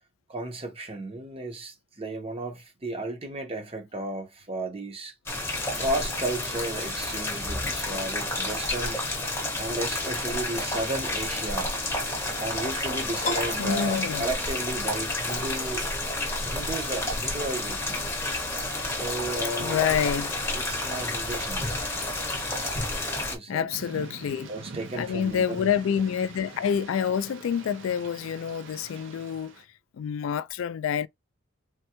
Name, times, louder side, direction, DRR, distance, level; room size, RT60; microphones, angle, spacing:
voice 1, 0.3-5.1 5.8-9.0 9.6-11.7 12.4-15.8 16.4-18.1 18.9-20.0 20.5-21.7 23.2-24.0 24.5-25.7, right 2 dB, 30° right, 0.8 m, -34 dB
sound 1, 5.3-23.4, left 2 dB, 15° left, 0.9 m, -30 dB
Piano, 13.2-14.8, left 1 dB, 40° left, 0.6 m, -34 dB
voice 2, 13.6-14.3 19.6-20.4 23.5-24.5 24.9-29.7 29.9-31.1, left 8 dB, 75° left, 0.3 m, -27 dB
Thunder / Rain, 23.7-29.6, right 4 dB, 65° right, 0.6 m, -45 dB
3.5 x 2.2 x 2.9 m
head